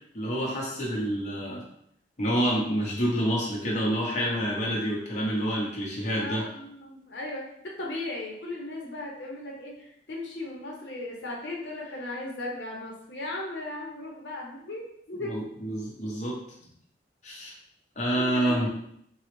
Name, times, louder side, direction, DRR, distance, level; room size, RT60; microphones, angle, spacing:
voice 1, 0.1-1.6 2.2-6.4 15.2-16.4 17.2-17.5 18.0-18.7, equal, 40° left, -4 dB, 0.8 m, -28 dB
voice 2, 6.2-15.3 18.1-18.7, left 2 dB, 80° left, -2 dB, 0.7 m, -37 dB
3.8 x 2.0 x 3.0 m, 0.71 s
head